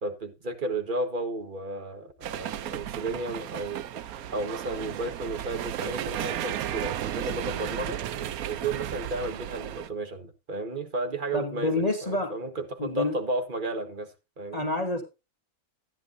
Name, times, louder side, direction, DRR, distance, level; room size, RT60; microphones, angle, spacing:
voice 1, 0.0-8.0 8.5-14.7, right 2 dB, 35° right, 1.6 m, -33 dB
sound 1, 2.2-9.9, right 11 dB, 90° right, 1.2 m, -34 dB
voice 2, 11.3-12.3 12.8-13.2 14.5-15.0, left 2 dB, 30° left, 1.5 m, -28 dB
14.0 x 10.0 x 2.7 m
omnidirectional pair, 1.5 m